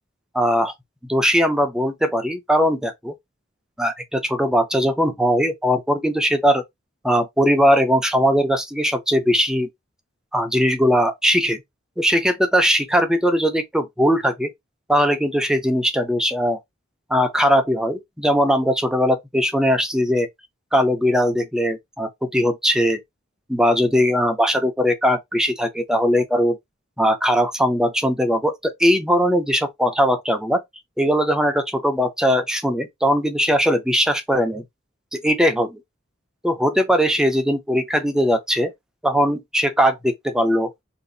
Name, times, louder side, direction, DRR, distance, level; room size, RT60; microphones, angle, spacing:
voice 1, 0.3-0.7 1.1-3.1 3.8-6.6 7.0-9.7 10.3-11.6 12.0-14.5 14.9-16.6 17.1-20.3 20.7-23.0 23.5-26.6 27.0-30.6 31.0-34.6 35.1-35.8 36.4-38.7 39.0-40.7, equal, 5° right, 0.5 m, -20 dB
2.6 x 2.5 x 3.7 m
head